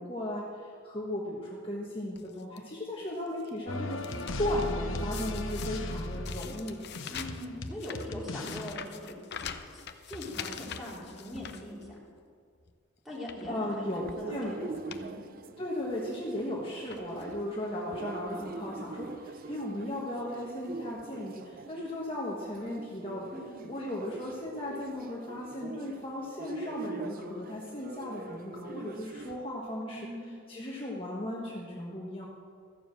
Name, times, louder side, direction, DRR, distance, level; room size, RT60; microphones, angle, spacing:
voice 1, 0.0-4.1 4.4-6.8 13.5-14.8 15.6-23.3 23.7-30.1 30.5-32.3, left 1 dB, 30° left, -4 dB, 1.4 m, -36 dB
Opening letter and handling paper, 2.1-2.6 3.1-4.7 5.1-12.2 12.6-12.7 13.1-13.5 14.3-14.4 14.7-15.1 15.4-15.5 16.4-16.5 16.9-17.4 18.1-18.2 18.4-18.5, left 7 dB, 55° left, 0.7 m, -44 dB
sound 1, 3.7-8.7, left 1 dB, 85° left, 0.9 m, -37 dB
voice 2, 7.1-12.0 13.1-13.9 14.2-14.5 14.8-15.2 23.3-23.7 29.9-30.3, left 1 dB, ahead, -6 dB, 3.4 m, -42 dB
sound 2, 13.8-29.4, right 3 dB, 45° right, 0.5 m, -43 dB
14.0 x 7.0 x 7.7 m, 2.2 s
head